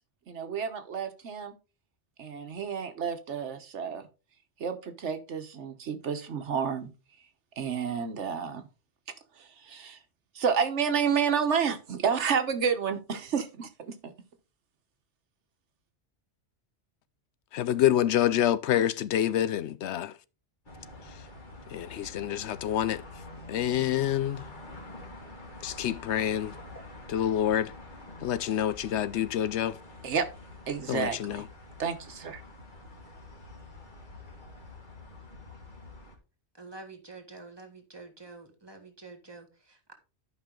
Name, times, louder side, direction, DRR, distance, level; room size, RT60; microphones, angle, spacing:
voice 1, 0.3-1.5 2.2-4.0 4.6-6.9 7.6-8.6 9.4-10.0 10.3-14.1 30.0-30.3 30.7-31.4 31.8-32.4, right 6 dB, 85° right, 1.4 m, -30 dB
voice 2, 17.5-20.1 21.7-23.0 23.5-24.4 25.6-26.5 27.1-27.7 28.2-29.8 30.9-31.5, left 11 dB, 75° left, 0.8 m, -27 dB
sound 1, 20.6-36.1, left 2 dB, 45° left, 2.1 m, -47 dB
voice 3, 36.5-39.9, right 3 dB, 20° right, 1.8 m, -47 dB
11.5 x 5.5 x 3.7 m
omnidirectional pair, 1.2 m